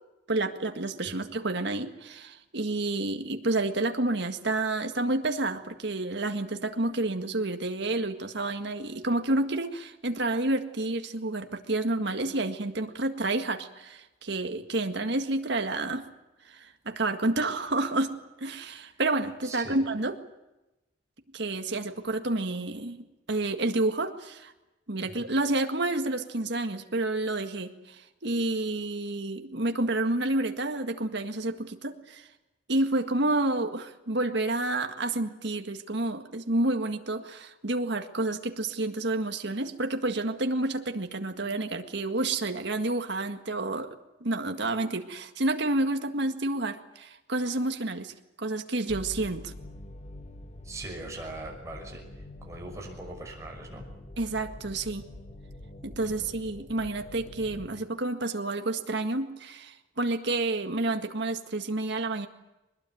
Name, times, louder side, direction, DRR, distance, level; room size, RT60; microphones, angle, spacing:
voice 1, 0.3-16.0 16.5-18.1 18.4-20.1 21.3-24.5 24.9-32.3 32.7-43.9 44.2-49.5 54.2-55.0 55.8-62.3, right 2 dB, 60° right, 6 dB, 1.9 m, -29 dB
voice 2, 19.4-19.8 25.0-25.2 50.6-52.0 52.4-53.8 56.0-56.3, right 2 dB, 15° right, 0 dB, 6.1 m, -41 dB
sound 1, 48.9-57.7, left 1 dB, 35° left, 1.6 m, -45 dB
22.5 x 20.5 x 9.3 m, 1.0 s
head